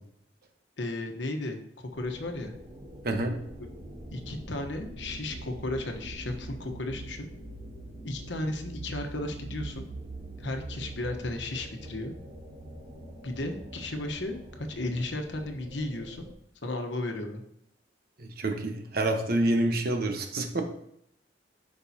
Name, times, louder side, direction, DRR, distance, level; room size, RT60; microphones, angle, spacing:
voice 1, 0.8-2.6 4.1-7.3 8.0-9.9 10.4-12.1 13.2-16.3 16.6-17.4, left 2 dB, 85° left, 5 dB, 1.1 m, -34 dB
sound 1, 1.9-16.3, right 1 dB, 30° right, 2.6 m, -43 dB
voice 2, 3.0-3.3 18.2-20.7, right 1 dB, 55° right, 5 dB, 1.1 m, -27 dB
12.5 x 5.3 x 2.8 m, 0.74 s
head